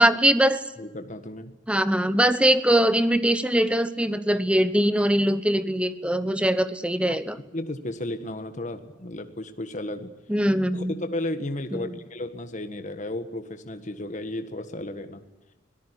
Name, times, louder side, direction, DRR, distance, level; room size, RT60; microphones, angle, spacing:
voice 1, 0.0-0.6 1.7-7.4 10.3-10.9 11.7-11.9, right 1 dB, 5° right, 13 dB, 1.0 m, -22 dB
voice 2, 0.8-1.5 7.5-10.1 10.7-15.2, left 1 dB, 40° left, 8 dB, 1.6 m, -33 dB
25.0 x 17.5 x 9.9 m, 1.0 s
head